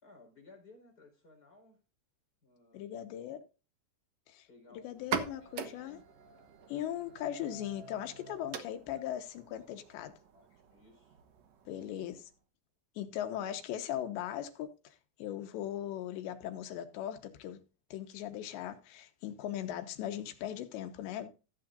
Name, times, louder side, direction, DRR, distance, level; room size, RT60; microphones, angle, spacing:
voice 1, 0.0-1.8 2.4-3.1 4.5-6.0 8.7-8.8 9.7-9.8 10.3-11.2 13.1-13.5, left 3 dB, 20° left, 4.8 m, -60 dB
voice 2, 2.7-3.4 4.3-6.0 6.7-10.1 11.7-12.3 13.0-17.6 17.9-21.3, left 11 dB, 90° left, 3.4 m, -39 dB
sound 1, 4.9-12.4, right 7 dB, 75° right, 1.6 m, -43 dB
15.0 x 8.8 x 2.6 m
omnidirectional pair, 4.9 m